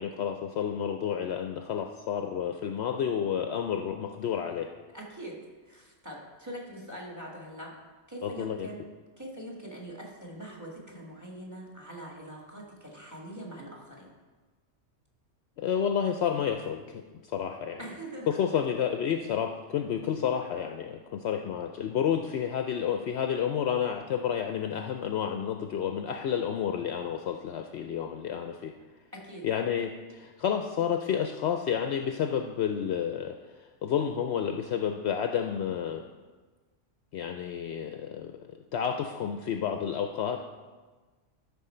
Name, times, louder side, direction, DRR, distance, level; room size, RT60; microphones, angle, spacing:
voice 1, 0.0-4.7 8.2-8.7 15.6-17.8 18.3-28.7 29.4-33.4 33.8-36.0 37.1-40.4, left 8 dB, 65° left, 5 dB, 0.7 m, -30 dB
voice 2, 4.9-5.4 5.6-7.8 8.1-8.8 9.2-14.1 17.8-18.5 29.1-29.4, right 1 dB, 15° right, -2 dB, 1.7 m, -43 dB
13.0 x 6.0 x 4.3 m, 1.3 s
omnidirectional pair, 1.3 m